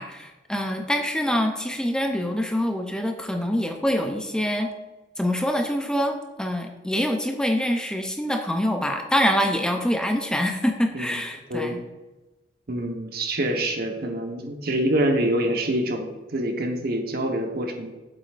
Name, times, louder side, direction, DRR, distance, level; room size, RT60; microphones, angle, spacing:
voice 1, 0.0-4.7 5.2-11.8, equal, 5° left, 4 dB, 0.5 m, -25 dB
voice 2, 12.7-17.9, right 1 dB, 60° right, 3 dB, 1.1 m, -26 dB
8.1 x 7.9 x 2.5 m, 1.1 s
head